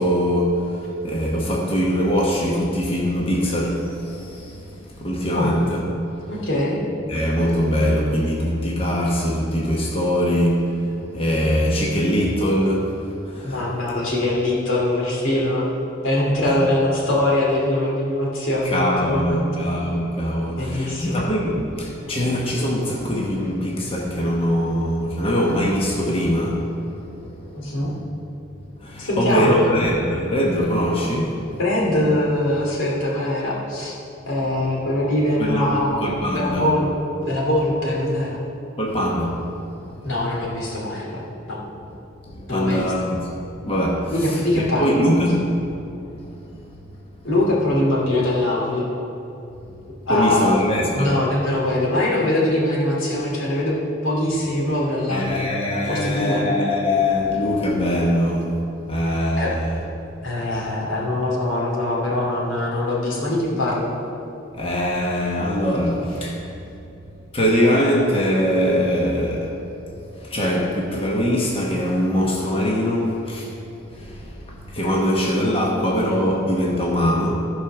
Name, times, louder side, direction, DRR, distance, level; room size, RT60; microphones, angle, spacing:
voice 1, 0.0-5.8 7.1-13.6 16.4-16.6 18.6-27.8 28.8-31.6 35.4-35.7 36.0-36.7 38.8-40.0 42.3-43.2 43.6-45.6 46.1-46.2 50.1-51.1 55.1-58.6 58.9-59.8 64.5-66.5 67.3-69.6 69.9-73.5 73.9-77.3, equal, 30° left, -3 dB, 1.1 m, -22 dB
voice 2, 6.4-6.8 13.4-15.7 16.0-19.6 20.6-21.1 27.5-27.9 29.0-29.7 31.6-33.9 34.3-36.9 37.2-38.4 40.0-41.2 41.5-41.6 42.5-42.9 44.1-45.0 47.2-48.8 50.1-50.6 50.9-53.8 54.0-55.5 55.9-56.4 59.4-59.5 60.2-63.9, left 1 dB, 85° left, -4 dB, 2.6 m, -22 dB
14.5 x 5.0 x 6.0 m, 2.8 s
head